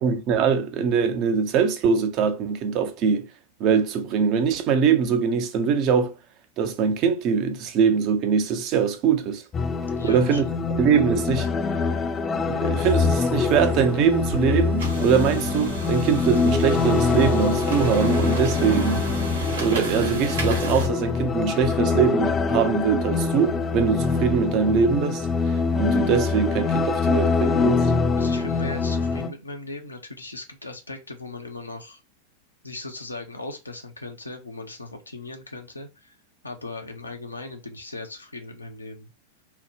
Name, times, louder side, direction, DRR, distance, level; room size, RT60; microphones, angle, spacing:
voice 1, 0.0-3.3 3.6-6.2 6.6-9.4 10.0-10.5 10.7-11.5 12.5-19.0 19.6-27.9, right 6 dB, 40° right, 0.5 m, -22 dB
sound 1, 9.5-29.3, left 4 dB, 25° left, 0.5 m, -24 dB
voice 2, 9.9-10.4 28.2-32.0 32.6-36.2 36.4-39.1, left 2 dB, 80° left, 0.6 m, -38 dB
sound 2, 12.7-20.9, right 2 dB, 65° right, 1.1 m, -32 dB
2.8 x 2.1 x 3.2 m
figure-of-eight pair, 90°, 0 cm